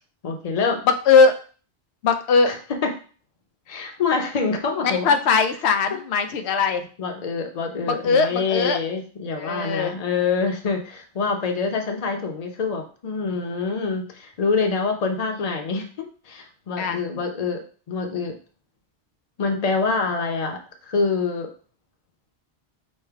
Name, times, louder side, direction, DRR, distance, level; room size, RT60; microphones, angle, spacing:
voice 1, 0.2-0.8 2.5-2.6 2.8-2.9 3.7-5.2 5.9-6.0 7.0-17.6 17.9-18.3 19.4-21.5, left 4 dB, 40° left, 4 dB, 0.8 m, -26 dB
voice 2, 0.9-1.4 2.0-2.5 4.8-6.8 8.0-8.8 9.4-10.0 16.8-17.0, left 5 dB, 90° left, 8 dB, 0.8 m, -19 dB
5.4 x 2.1 x 4.6 m, 0.39 s
omnidirectional pair, 1.1 m